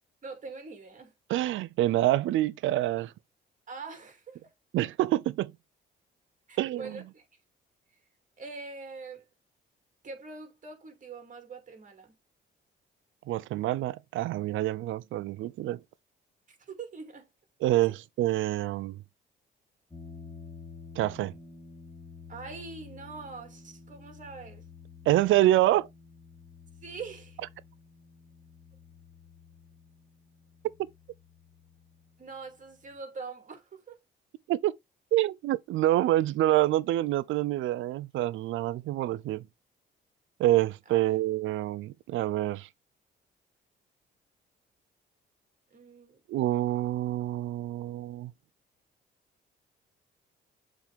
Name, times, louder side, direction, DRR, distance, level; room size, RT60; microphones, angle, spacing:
voice 1, 0.2-1.1 3.7-4.5 6.5-7.2 8.4-9.2 10.0-12.1 16.6-17.3 22.3-24.7 26.8-27.4 32.2-34.0 40.9-41.2 45.7-46.2, right 4 dB, 40° right, 2.4 m, -43 dB
voice 2, 1.3-3.1 4.7-5.5 6.6-7.0 13.3-15.8 17.6-19.0 21.0-21.3 25.1-25.9 34.5-34.7 35.1-39.5 40.4-42.7 46.3-48.3, right 15 dB, 80° right, 0.5 m, -27 dB
sound 1, 19.9-33.0, left 5 dB, 15° left, 3.3 m, -51 dB
7.2 x 3.8 x 3.4 m
cardioid pair, 90°, 20 cm